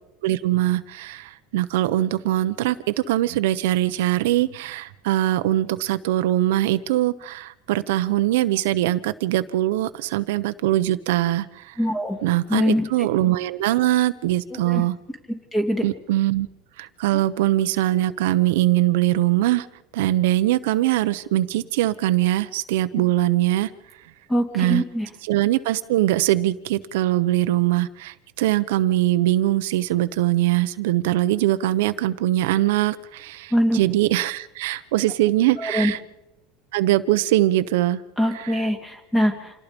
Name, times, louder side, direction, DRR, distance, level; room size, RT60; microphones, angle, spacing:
voice 1, 0.2-11.8 12.2-15.0 15.8-16.5 16.8-19.7 19.9-23.7 24.5-24.8 25.2-36.0 36.7-38.0 38.3-38.6, right 15 dB, 85° right, 11 dB, 1.0 m, -22 dB
voice 2, 11.8-12.2 12.5-12.8 14.5-14.8 15.5-15.9 24.3-25.1 33.5-33.8 35.6-35.9 38.2-39.5, equal, 10° left, 5 dB, 3.0 m, -22 dB
27.5 x 18.0 x 5.4 m, 0.89 s
supercardioid pair, 155°, 0 cm